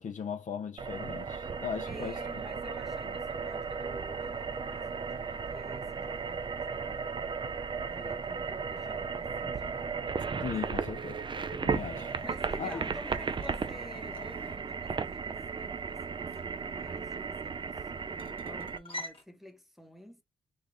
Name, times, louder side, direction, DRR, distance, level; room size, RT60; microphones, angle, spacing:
voice 1, 0.0-2.2 10.4-11.2 11.5-12.1 12.6-12.8, left 7 dB, 55° left, 0.7 m, -38 dB
sound 1, 0.8-18.8, right 5 dB, 30° right, 0.5 m, -35 dB
voice 2, 1.8-7.0 7.8-9.9 10.8-10.9 12.2-17.9 18.4-20.2, left 1 dB, ahead, 1.0 m, -50 dB
sound 2, 11.7-19.2, left 1 dB, 35° left, 1.3 m, -49 dB
3.3 x 2.4 x 3.6 m
cardioid pair, 80°, 16 cm